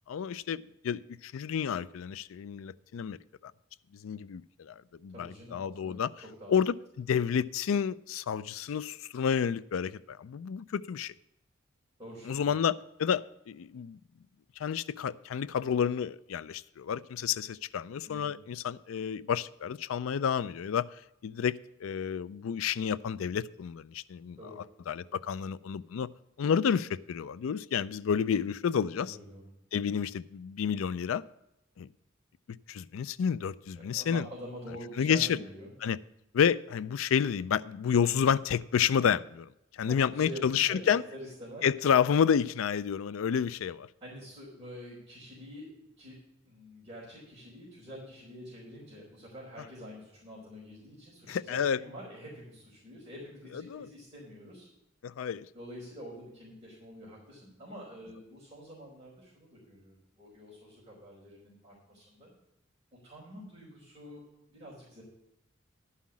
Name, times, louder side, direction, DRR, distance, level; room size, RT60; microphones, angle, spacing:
voice 1, 0.1-3.2 3.4-3.5 4.0-4.7 5.0-6.1 6.5-11.1 12.3-14.0 14.6-20.9 21.2-21.6 21.8-24.4 24.9-26.1 26.4-29.2 29.7-31.2 31.8-31.9 32.7-34.3 35.0-35.3 35.8-36.0 36.3-39.5 39.8-41.0 41.6-43.9 51.3-51.8 53.7-53.9 55.0-55.5, left 7 dB, 90° left, 0.4 m, -30 dB
voice 2, 5.1-6.5 12.0-12.5 18.0-18.4 24.4-24.6 29.0-29.5 33.8-35.7 39.8-41.6 44.0-45.7 46.0-46.2 46.4-54.7 55.5-62.3 63.0-64.2 64.5-65.0, equal, 20° right, 4.2 m, -47 dB
11.5 x 5.7 x 7.2 m
head